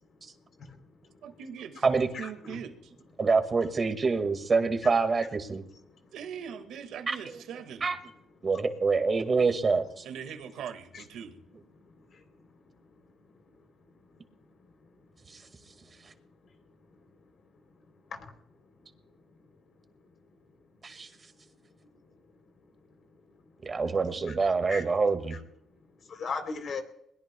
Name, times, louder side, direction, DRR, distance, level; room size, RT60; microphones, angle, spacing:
voice 1, 1.2-2.9 6.1-7.9 10.0-11.4 23.9-24.4, right 7 dB, 85° right, 1.9 m, -41 dB
voice 2, 2.1-2.6 10.9-11.0 12.0-12.2 18.1-18.3 24.3-24.4 24.7-24.8 26.1-26.8, left 5 dB, 55° left, 3.5 m, -37 dB
voice 3, 3.2-5.6 7.1-7.2 7.8-8.0 8.4-10.0 15.3-15.4 20.8-21.1 23.7-25.4, right 4 dB, 35° right, 2.0 m, -26 dB
22.0 x 21.0 x 2.3 m
cardioid pair, 90°, 0 cm